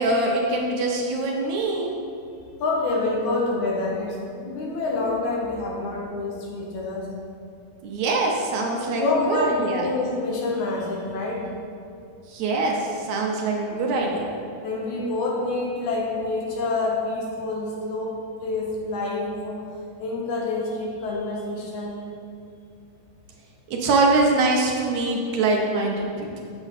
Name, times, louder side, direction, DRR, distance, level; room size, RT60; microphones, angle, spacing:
voice 1, 0.0-1.9 7.8-9.9 12.3-14.3 23.7-26.4, right 2 dB, 70° right, 0 dB, 2.0 m, -23 dB
voice 2, 2.6-7.1 8.8-11.5 13.8-14.0 14.6-19.6 20.0-22.0, left 2 dB, 75° left, -2 dB, 2.5 m, -27 dB
8.2 x 6.9 x 4.1 m, 2.5 s
omnidirectional pair, 3.6 m